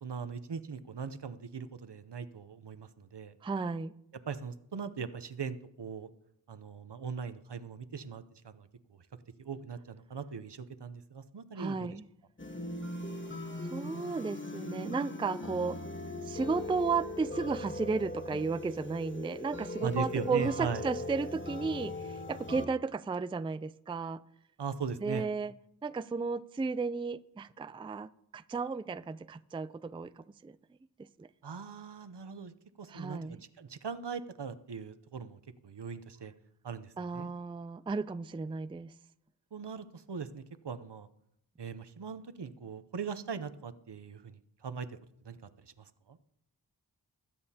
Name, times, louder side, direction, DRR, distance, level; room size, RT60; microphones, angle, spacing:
voice 1, 0.0-3.4 4.3-6.1 6.5-8.7 9.4-11.9 19.8-20.8 24.6-25.3 31.4-32.5 32.8-36.3 36.6-37.3 39.5-41.1 41.6-44.9 45.2-45.4 45.8-46.2, right 6 dB, 75° right, 13 dB, 0.7 m, -40 dB
voice 2, 3.4-3.9 11.6-12.1 13.7-15.8 16.2-24.2 25.0-25.5 25.8-30.5 31.2-31.3 32.9-33.4 37.0-38.9, right 4 dB, 15° right, 15 dB, 0.3 m, -34 dB
sound 1, 12.4-22.7, left 2 dB, 30° left, 1.2 m, -40 dB
20.5 x 8.6 x 2.8 m, 0.76 s
wide cardioid pair, 40°, 42 cm